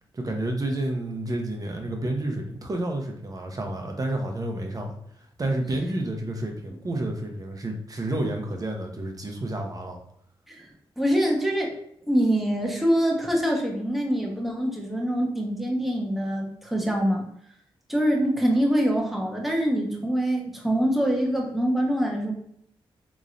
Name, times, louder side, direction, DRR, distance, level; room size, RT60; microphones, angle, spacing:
voice 1, 0.1-5.0 5.4-10.0, right 1 dB, 40° right, 2 dB, 0.8 m, -30 dB
voice 2, 11.0-11.7 12.1-17.3 17.9-22.3, equal, ahead, -1 dB, 1.0 m, -24 dB
3.7 x 3.0 x 2.6 m, 0.70 s
cardioid pair, 55°, 10 cm